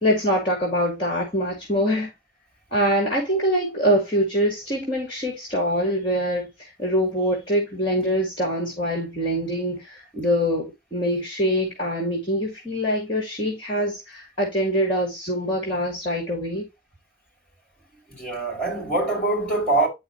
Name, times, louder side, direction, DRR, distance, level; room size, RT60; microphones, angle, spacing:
voice 1, 0.0-2.1 2.7-16.6, equal, 30° left, 2.5 m, -24 dB
voice 2, 18.1-19.9, right 2 dB, 10° left, 5.4 m, -24 dB
11.0 x 4.4 x 2.8 m
head